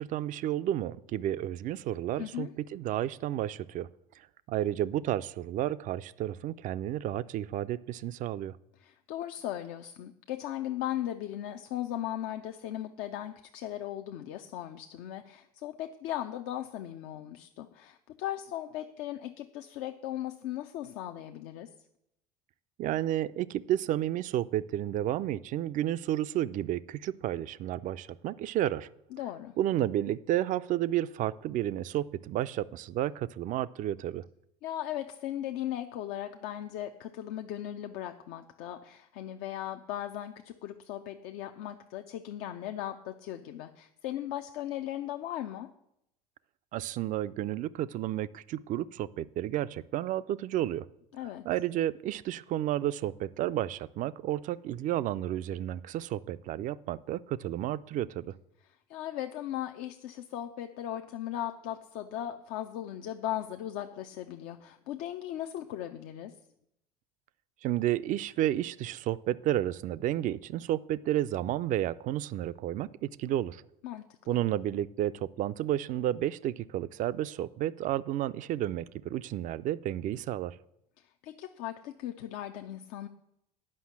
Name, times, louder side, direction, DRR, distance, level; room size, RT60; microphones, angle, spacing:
voice 1, 0.0-3.9 4.5-8.6 22.8-28.9 29.6-34.2 46.7-50.9 51.4-58.3 67.6-73.6 74.3-80.6, right 13 dB, 40° right, 17 dB, 0.4 m, -31 dB
voice 2, 2.2-2.5 8.8-21.7 29.1-29.5 34.6-45.7 51.1-51.5 58.9-66.3 73.8-74.4 81.0-83.1, left 12 dB, 60° left, 6 dB, 0.6 m, -38 dB
9.8 x 5.6 x 7.2 m, 0.80 s
figure-of-eight pair, 65°, 19 cm